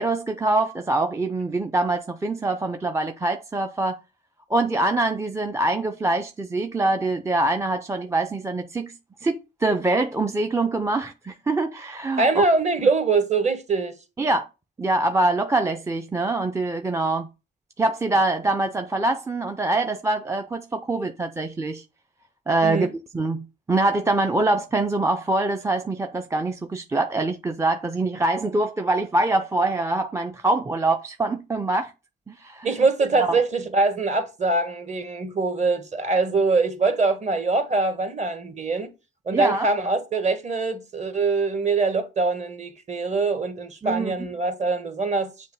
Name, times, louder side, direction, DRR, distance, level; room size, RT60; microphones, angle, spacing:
voice 1, 0.0-4.0 4.5-8.9 9.2-12.4 12.8-12.9 14.2-14.5 14.8-17.3 17.8-21.8 22.5-22.9 23.1-31.9 32.3-32.7 33.2-33.4 39.3-39.7 43.8-44.1, right 2 dB, 15° right, 0.5 m, -24 dB
voice 2, 12.2-14.0 22.6-22.9 32.6-38.9 39.3-45.3, right 3 dB, 35° right, 1.2 m, -23 dB
7.0 x 2.7 x 5.4 m
cardioid pair, 90°, 20 cm